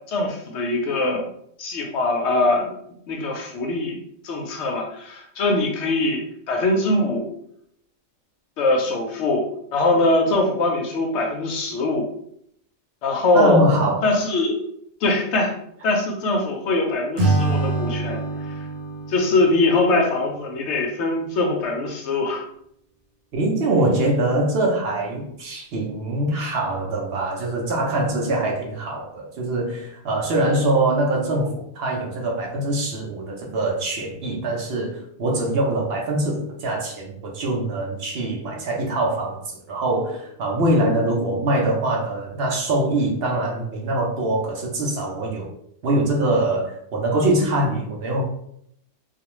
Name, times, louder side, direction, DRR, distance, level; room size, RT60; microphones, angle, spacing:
voice 1, 0.1-1.3 1.6-2.7 3.1-4.0 4.2-7.3 8.6-9.5 9.7-12.1 13.0-13.6 14.0-14.6 15.0-15.6 15.8-18.2 19.1-22.4, left 2 dB, 65° left, 2 dB, 0.8 m, -22 dB
voice 2, 13.3-14.1 23.3-45.5 45.8-48.3, right 1 dB, 60° right, 0 dB, 0.7 m, -23 dB
Acoustic guitar / Strum, 17.2-20.4, right 2 dB, 85° right, 1.2 m, -25 dB
2.4 x 2.2 x 2.9 m, 0.71 s
omnidirectional pair, 1.4 m